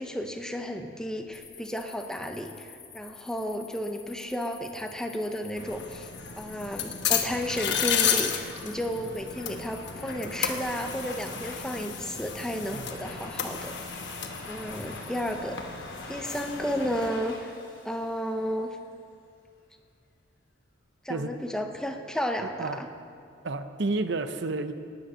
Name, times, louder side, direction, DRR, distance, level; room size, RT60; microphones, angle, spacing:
voice 1, 0.0-6.1 6.4-13.8 14.5-17.5 17.8-18.8 21.0-22.9, equal, 5° left, 4 dB, 0.8 m, -33 dB
sound 1, 1.3-15.3, left 6 dB, 30° left, 2.2 m, -50 dB
sound 2, 5.6-17.1, left 7 dB, 60° left, 1.2 m, -33 dB
Domestic sounds home sounds, 9.9-18.9, left 2 dB, 75° left, 2.7 m, -45 dB
voice 2, 23.4-24.7, right 3 dB, 60° right, 10 dB, 0.7 m, -30 dB
18.0 x 9.2 x 6.2 m, 2.3 s
head